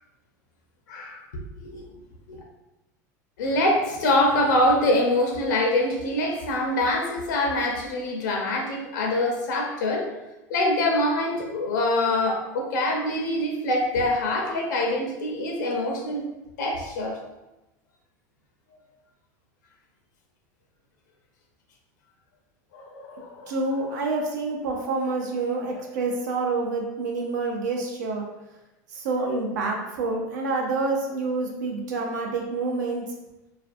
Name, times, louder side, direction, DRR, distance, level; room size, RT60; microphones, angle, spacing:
voice 1, 0.9-1.2 1.6-1.9 2.3-2.4 3.4-10.1 10.5-16.3 16.6-17.2 22.7-23.5 29.2-29.3, left 1 dB, 85° left, 0 dB, 0.5 m, -24 dB
voice 2, 23.5-28.3 28.9-33.0, right 3 dB, 85° right, 1 dB, 0.6 m, -27 dB
2.5 x 2.3 x 2.5 m, 0.98 s
supercardioid pair, 110°, 9 cm